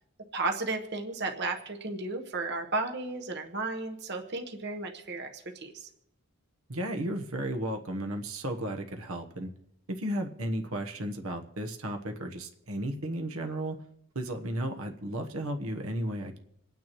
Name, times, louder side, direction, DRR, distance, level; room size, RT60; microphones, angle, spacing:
voice 1, 0.3-5.9, right 3 dB, 50° right, 4 dB, 1.1 m, -34 dB
voice 2, 6.7-9.5 9.9-13.8 14.1-16.4, right 1 dB, 75° right, 4 dB, 1.1 m, -34 dB
27.5 x 9.4 x 3.0 m, 0.79 s
head